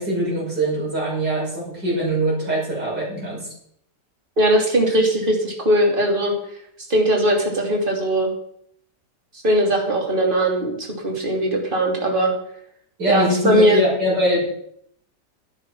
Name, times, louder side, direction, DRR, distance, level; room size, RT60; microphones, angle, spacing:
voice 1, 0.0-3.5 13.0-14.5, equal, 70° right, -6 dB, 6.9 m, -22 dB
voice 2, 4.4-6.3 6.9-8.3 9.4-12.3 13.1-13.8, right 1 dB, 30° right, 0 dB, 3.0 m, -19 dB
11.0 x 11.0 x 6.2 m, 0.70 s
omnidirectional pair, 1.9 m